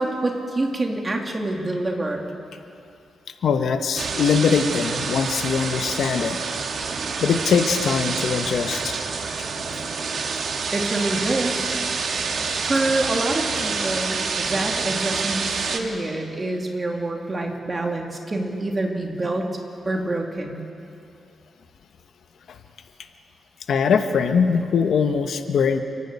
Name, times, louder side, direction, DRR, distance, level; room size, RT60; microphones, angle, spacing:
voice 1, 0.0-2.3 10.7-11.7 12.6-19.5 19.8-20.6, right 2 dB, 25° right, 1 dB, 2.6 m, -26 dB
voice 2, 3.4-6.4 7.2-9.0 22.5-22.6 23.7-25.8, left 6 dB, 75° left, 7 dB, 1.1 m, -21 dB
sound 1, 4.0-15.8, right 5 dB, 60° right, 1.8 m, -27 dB
29.0 x 11.0 x 8.5 m, 2.6 s
cardioid pair, 100°, 0 cm